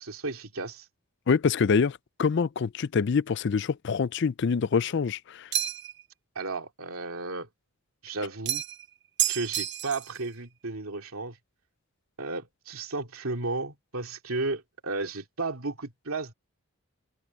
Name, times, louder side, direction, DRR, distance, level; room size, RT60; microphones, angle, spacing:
voice 1, 0.1-0.8 6.3-7.5 8.0-8.6 9.3-11.4 12.2-16.3, right 3 dB, 75° right, 2.5 m, -33 dB
voice 2, 1.3-5.5, left 5 dB, 50° left, 0.4 m, -25 dB
sound 1, 5.5-6.0 8.5-8.8 9.2-10.2, right 11 dB, 50° right, 1.1 m, -29 dB
head